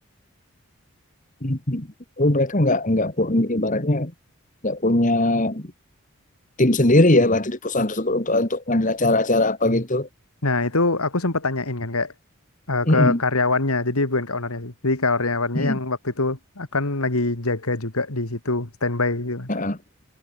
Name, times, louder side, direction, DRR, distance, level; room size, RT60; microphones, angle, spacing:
voice 1, 1.4-1.9 2.2-4.1 4.6-5.7 6.6-10.1 12.9-13.2 15.6-15.8 19.5-19.8, left 1 dB, 35° left, 2.0 m, -20 dB
voice 2, 10.4-12.1 12.7-19.5, left 3 dB, 80° left, 2.5 m, -24 dB
head